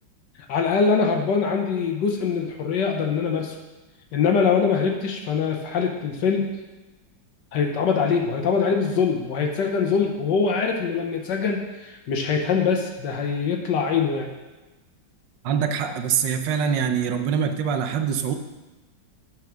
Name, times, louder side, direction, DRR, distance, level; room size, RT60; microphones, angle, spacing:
voice 1, 0.5-3.5 4.1-6.5 7.5-14.3, left 5 dB, 70° left, 3 dB, 1.5 m, -23 dB
voice 2, 15.4-18.3, right 7 dB, 75° right, 7 dB, 1.3 m, -24 dB
9.4 x 4.6 x 6.2 m, 1.1 s
omnidirectional pair, 2.0 m